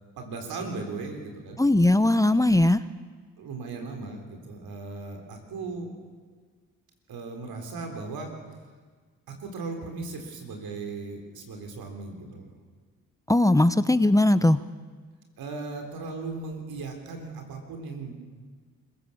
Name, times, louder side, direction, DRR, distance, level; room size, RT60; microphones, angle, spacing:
voice 1, 0.2-1.6 3.4-5.9 7.1-8.3 9.4-12.5 15.4-18.1, right 3 dB, 80° right, 3 dB, 4.1 m, -37 dB
voice 2, 1.6-2.8 13.3-14.6, left 1 dB, 10° left, 13 dB, 0.9 m, -19 dB
26.5 x 16.5 x 7.3 m, 1.5 s
supercardioid pair, 50°, 36 cm